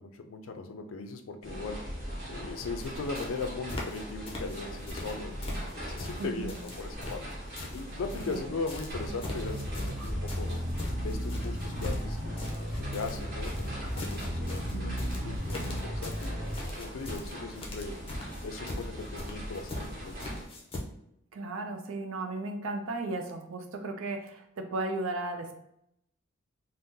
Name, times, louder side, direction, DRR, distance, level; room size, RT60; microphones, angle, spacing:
voice 1, 0.0-10.6 11.0-16.4 16.7-18.0 18.4-20.4, left 4 dB, 75° left, 7 dB, 0.4 m, -39 dB
sound 1, 1.4-20.4, equal, 50° right, 1.1 m, -40 dB
sound 2, 2.8-2.9 3.2-4.0 4.3-5.2 5.4-8.4 8.7-20.8, left 1 dB, 30° left, 0.5 m, -41 dB
voice 2, 6.2-6.6 8.3-8.5 14.7-15.0 21.3-25.6, right 2 dB, 80° right, 6 dB, 0.4 m, -35 dB
sound 3, 8.9-16.5, equal, ahead, 0.9 m, -35 dB
2.7 x 2.0 x 3.6 m, 0.78 s
head